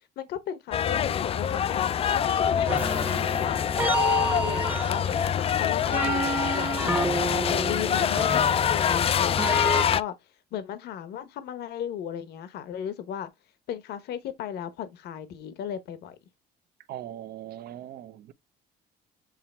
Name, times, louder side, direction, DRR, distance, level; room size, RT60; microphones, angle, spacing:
voice 1, 0.2-1.9 2.1-3.6 4.3-10.1 10.5-13.3 13.7-16.2, left 9 dB, 75° left, 1.0 m, -36 dB
sound 1, 0.7-10.0, left 8 dB, 35° left, 0.4 m, -25 dB
sound 2, 2.7-9.8, right 2 dB, 10° right, 0.9 m, -31 dB
voice 2, 16.9-18.3, right 12 dB, 65° right, 0.7 m, -40 dB
7.7 x 3.1 x 4.3 m
cardioid pair, 110°, 17 cm